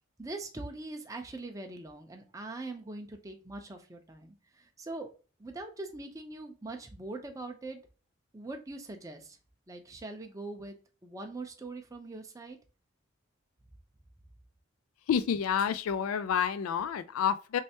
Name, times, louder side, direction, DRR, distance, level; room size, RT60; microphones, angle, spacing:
voice 1, 0.2-5.1 5.4-7.8 8.3-9.4 9.7-10.8 11.0-12.6, right 2 dB, 15° right, 0.5 m, -42 dB
voice 2, 15.1-17.6, left 7 dB, 80° left, 0.3 m, -29 dB
3.2 x 3.2 x 2.8 m
head